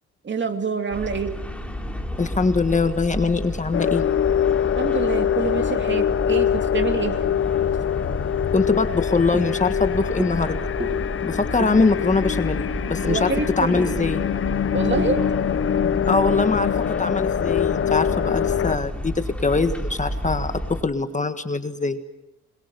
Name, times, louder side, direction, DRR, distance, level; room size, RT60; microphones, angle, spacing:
voice 1, 0.2-1.3 4.7-7.3 13.0-14.1 14.7-15.2, right 5 dB, 40° right, 6 dB, 2.7 m, -27 dB
sound 1, 0.9-20.8, equal, 5° left, 3.1 m, -32 dB
voice 2, 2.2-4.0 8.5-10.6 11.2-13.3 13.6-14.3 16.1-16.7 17.0-22.0, left 4 dB, 25° left, 9 dB, 1.5 m, -22 dB
sound 2, 3.7-18.8, left 9 dB, 45° left, 0.8 m, -24 dB
sound 3, 7.4-15.3, right 3 dB, 20° right, 2.1 m, -38 dB
26.5 x 22.0 x 6.9 m, 0.94 s
cardioid pair, 90°, 30 cm